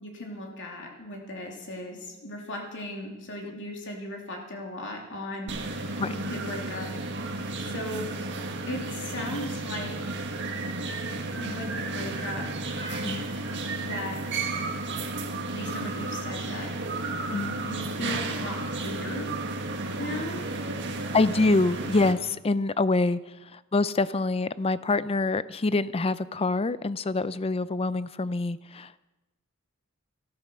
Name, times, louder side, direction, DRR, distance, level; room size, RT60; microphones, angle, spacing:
voice 1, 0.0-6.9 7.6-8.1 8.7-9.9 11.4-12.8 13.8-14.2 15.5-16.7 17.5-18.5 18.8-19.3 20.0-20.5, left 1 dB, 60° left, 0 dB, 2.8 m, -37 dB
sound 1, 5.5-22.1, right 2 dB, 55° right, 1.6 m, -33 dB
voice 2, 21.1-23.2 23.5-28.9, left 3 dB, 25° left, 16 dB, 0.5 m, -25 dB
14.0 x 12.5 x 6.2 m, 1.1 s
head